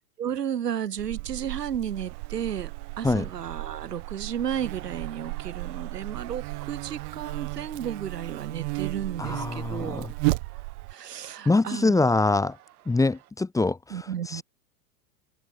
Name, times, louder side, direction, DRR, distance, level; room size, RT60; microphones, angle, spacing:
voice 1, 0.2-10.1 10.9-12.0 13.9-14.4, right 9 dB, 85° right, 2.0 m, -33 dB
Buzz, 1.0-10.9, right 28 dB, 50° right, 1.7 m, -34 dB
sound 1, 1.9-13.3, right 14 dB, 65° right, 7.3 m, -50 dB
voice 2, 9.2-10.1 11.4-12.6 12.9-13.8 14.3-14.4, left 3 dB, 5° left, 1.3 m, -24 dB
open air
hypercardioid pair, 105°, 47 cm